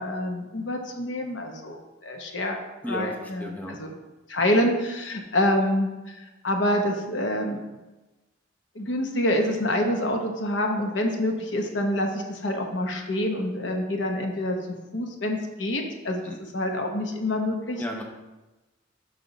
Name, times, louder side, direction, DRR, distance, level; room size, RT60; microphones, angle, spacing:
voice 1, 0.0-2.6 2.9-3.9 4.3-6.2 6.4-7.6 8.7-14.6 14.9-17.8, left 1 dB, 70° left, 3 dB, 1.0 m, -27 dB
voice 2, 2.8-3.8 16.2-16.4 17.8-18.0, equal, 10° left, 0 dB, 0.8 m, -34 dB
6.4 x 5.6 x 4.1 m, 1.1 s
head